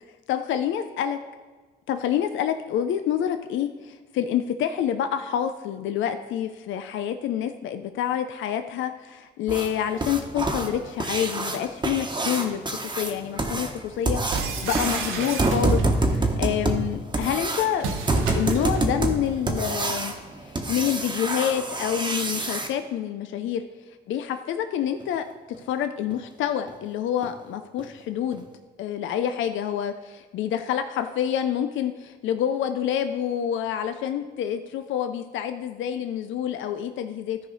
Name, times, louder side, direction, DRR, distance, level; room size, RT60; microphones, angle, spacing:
voice 1, 0.3-1.2 1.9-14.2 14.6-20.1 20.4-25.3 25.7-28.5 28.8-37.4, left 9 dB, 75° left, 8 dB, 0.5 m, -27 dB
sound 1, 9.5-22.7 25.0-25.1 25.5-25.6 26.1-26.2 26.7-26.8 27.2-27.4 27.8-27.9 28.3-28.4, right 2 dB, 20° right, 1.2 m, -27 dB
sound 2, 14.3-16.0 17.8-18.9, right 4 dB, 90° right, 1.2 m, -31 dB
13.5 x 4.9 x 4.0 m, 1.4 s
cardioid pair, 90°, 20 cm